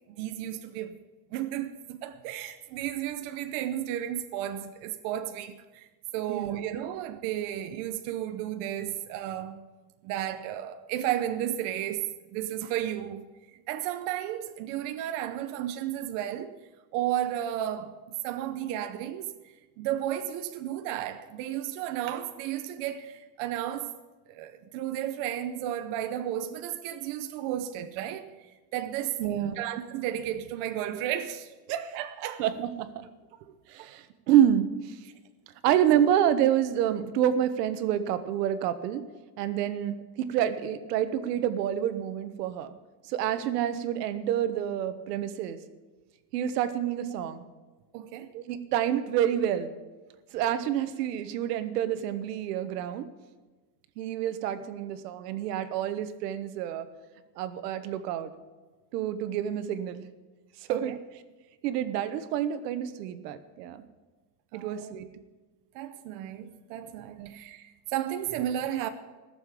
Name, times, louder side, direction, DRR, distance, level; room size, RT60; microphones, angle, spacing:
voice 1, 0.1-1.0 1.3-5.9 6.1-9.6 10.0-13.3 13.7-16.6 16.9-23.9 24.3-28.3 28.7-32.5 35.7-35.8 47.9-48.3 60.7-61.0 64.5-64.9 65.7-68.9, right 11 dB, 40° right, 0.7 m, -33 dB
voice 2, 6.3-6.6 29.2-29.6 32.4-33.0 33.7-35.0 35.6-39.0 39.4-42.7 43.1-45.6 46.3-47.4 48.3-49.7 50.3-53.1 54.0-56.9 57.4-58.3 58.9-60.0 60.7-61.0 61.6-63.8 64.5-65.1 67.2-67.3, right 10 dB, 75° right, 1.3 m, -28 dB
16.0 x 7.1 x 8.4 m
supercardioid pair, 175°, 49 cm